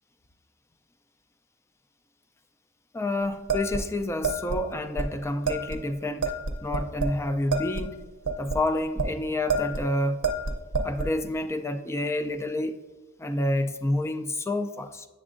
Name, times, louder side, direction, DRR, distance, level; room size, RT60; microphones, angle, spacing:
voice 1, 2.9-6.4 6.6-8.0 8.4-10.2 10.8-12.8 13.2-15.1, left 1 dB, 10° left, 0.3 m, -29 dB
sound 1, 3.5-4.6 5.0-5.1 5.5-5.8 6.2-7.2 7.5-9.1 9.5-9.9 10.2-11.1, right 3 dB, 55° right, 0.6 m, -28 dB
7.6 x 7.1 x 2.5 m
head